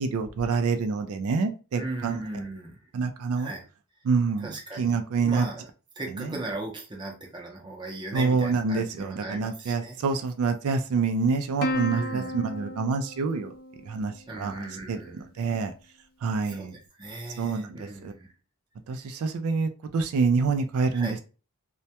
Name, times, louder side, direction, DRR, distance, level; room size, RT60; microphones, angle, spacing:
voice 1, 0.0-2.2 2.9-3.5 4.0-4.5 4.8-5.5 6.2-6.4 8.1-13.5 13.9-14.5 14.9-15.0 15.4-15.7 16.2-16.7 17.4-18.1 18.9-21.2, right 4 dB, 75° right, 7 dB, 0.3 m, -27 dB
voice 2, 1.7-2.8 3.4-3.7 4.4-5.7 6.0-10.0 11.9-12.3 14.3-15.2 16.4-18.3 19.0-19.1 20.9-21.2, right 2 dB, 20° right, 0 dB, 0.5 m, -38 dB
Plucked string instrument, 11.6-14.4, left 1 dB, 40° left, 0.3 m, -34 dB
2.1 x 2.1 x 2.7 m, 0.33 s
head